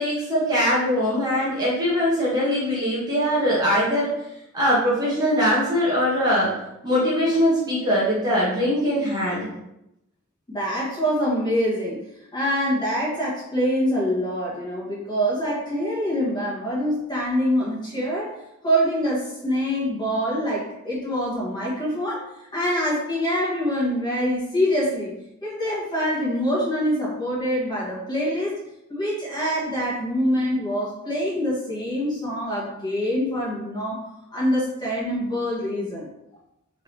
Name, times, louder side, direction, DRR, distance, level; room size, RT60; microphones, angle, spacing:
voice 1, 0.0-4.1 4.5-6.5 6.8-9.5, equal, 20° right, -8 dB, 1.0 m, -21 dB
voice 2, 10.5-12.0 12.3-18.3 18.6-22.2 22.5-25.1 25.4-28.6 28.9-34.0 34.3-36.1, equal, 20° left, -7 dB, 1.4 m, -25 dB
3.6 x 3.3 x 2.9 m, 0.87 s
head